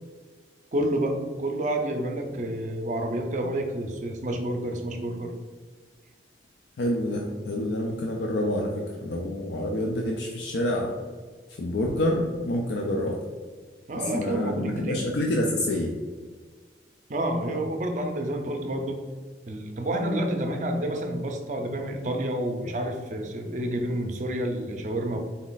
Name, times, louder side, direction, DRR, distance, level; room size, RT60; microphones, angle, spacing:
voice 1, 0.7-5.3 13.9-15.0 17.1-19.0 19.5-25.2, right 1 dB, 40° right, 4 dB, 0.5 m, -29 dB
voice 2, 6.8-10.9 11.6-13.2 14.0-15.9, left 1 dB, 70° left, 0 dB, 0.4 m, -27 dB
4.0 x 2.4 x 3.9 m, 1.5 s
head